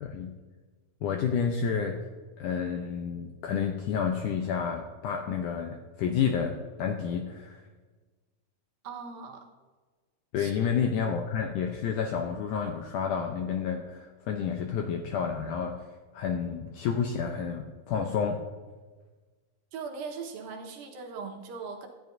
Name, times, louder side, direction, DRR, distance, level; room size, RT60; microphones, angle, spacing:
voice 1, 0.0-0.3 1.0-2.0 2.4-7.6 10.3-15.8 16.1-18.4, left 7 dB, 75° left, 3 dB, 1.9 m, -30 dB
voice 2, 8.8-9.5 10.4-10.7 19.7-21.9, right 5 dB, 75° right, 2 dB, 2.9 m, -39 dB
18.5 x 13.0 x 2.6 m, 1.4 s
omnidirectional pair, 4.4 m